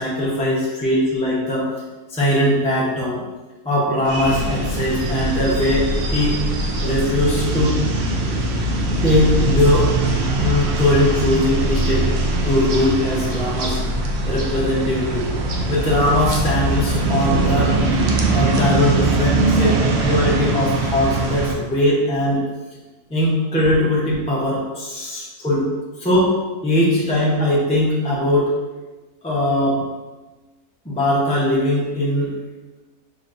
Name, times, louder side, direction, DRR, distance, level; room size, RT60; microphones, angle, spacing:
voice 1, 0.0-1.7 2.1-3.2 3.6-6.4 6.8-7.8 9.0-9.9 10.4-12.1 12.4-13.8 14.3-15.3 15.7-17.7 18.3-22.4 23.1-25.7 26.0-26.3 26.6-28.5 29.2-29.9 30.8-32.3, left 1 dB, 5° left, -7 dB, 0.6 m, -20 dB
sound 1, 4.0-21.5, right 2 dB, 65° right, 0.6 m, -21 dB
5.9 x 3.1 x 2.6 m, 1.2 s
omnidirectional pair, 1.6 m